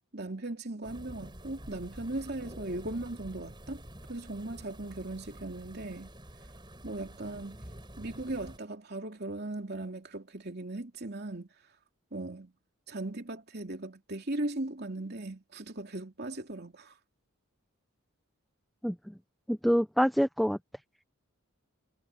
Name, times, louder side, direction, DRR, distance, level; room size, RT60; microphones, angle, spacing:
voice 1, 0.1-3.8 4.1-6.1 6.8-7.6 8.0-11.5 12.1-12.5 12.9-16.9, right 2 dB, 45° right, 3.2 m, -38 dB
sound 1, 0.8-8.6, right 1 dB, 20° right, 5.2 m, -48 dB
voice 2, 18.8-19.1 19.5-20.6, equal, ahead, 0.5 m, -26 dB
head